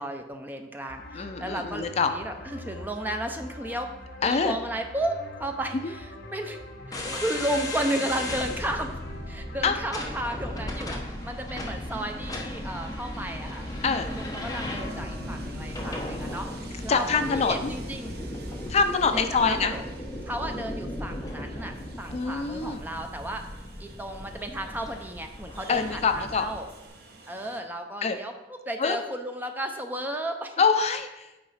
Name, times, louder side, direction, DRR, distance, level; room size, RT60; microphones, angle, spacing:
voice 1, 0.0-3.9 4.2-6.6 6.9-9.0 9.3-13.7 14.0-18.1 19.0-19.1 19.4-19.9 20.3-23.5 23.8-26.7 27.3-30.6, right 1 dB, 10° right, 5 dB, 0.6 m, -33 dB
sound 1, 0.9-9.8, left 1 dB, 60° left, 1.1 m, -43 dB
voice 2, 1.1-2.1 4.2-4.5 9.6-9.8 13.8-14.1 16.9-17.6 18.7-19.8 22.1-22.8 25.7-26.5 28.0-28.2 28.8-29.0 30.6-31.3, left 5 dB, 35° left, 8 dB, 0.4 m, -24 dB
sound 2, 6.9-26.6, left 1 dB, 20° left, 0.9 m, -36 dB
Train, 8.6-27.6, right 1 dB, 60° right, 1.0 m, -45 dB
8.6 x 4.7 x 4.2 m, 1.0 s
head